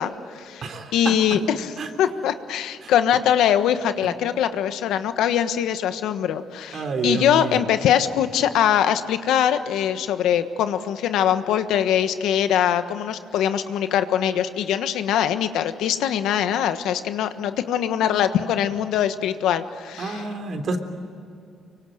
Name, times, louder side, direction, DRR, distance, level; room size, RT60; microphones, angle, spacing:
voice 1, 0.0-0.6 0.9-1.7 2.0-20.2, left 9 dB, 85° left, 10 dB, 1.3 m, -22 dB
voice 2, 0.6-1.4 1.8-1.9 2.8-2.9 6.7-7.6 20.0-20.8, right 3 dB, 55° right, 6 dB, 3.5 m, -28 dB
24.5 x 24.0 x 9.2 m, 2.5 s
cardioid pair, 90°, 0 cm